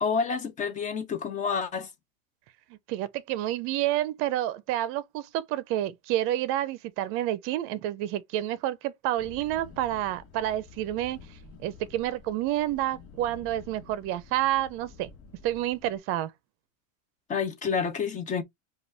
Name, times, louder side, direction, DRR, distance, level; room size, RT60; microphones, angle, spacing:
voice 1, 0.0-1.9 17.3-18.4, left 6 dB, 20° left, 0.5 m, -29 dB
voice 2, 2.7-11.2 11.6-15.1 15.4-16.3, right 13 dB, 35° right, 0.6 m, -29 dB
sound 1, 9.2-16.0, left 5 dB, 50° left, 1.5 m, -50 dB
5.1 x 2.4 x 3.2 m
supercardioid pair, 155°, 39 cm